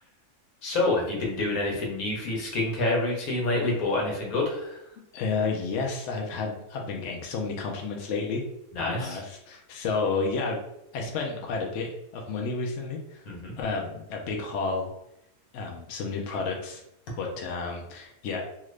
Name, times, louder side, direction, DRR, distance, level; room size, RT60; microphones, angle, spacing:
voice 1, 0.6-4.8 8.7-9.2 13.3-13.6, left 2 dB, 80° left, -2 dB, 1.4 m, -27 dB
voice 2, 5.1-8.4 8.8-10.6 10.9-13.2 13.6-14.9 15.5-16.8 17.2-18.4, left 4 dB, 65° left, 0 dB, 0.8 m, -31 dB
2.8 x 2.5 x 3.2 m, 0.82 s
omnidirectional pair, 1.5 m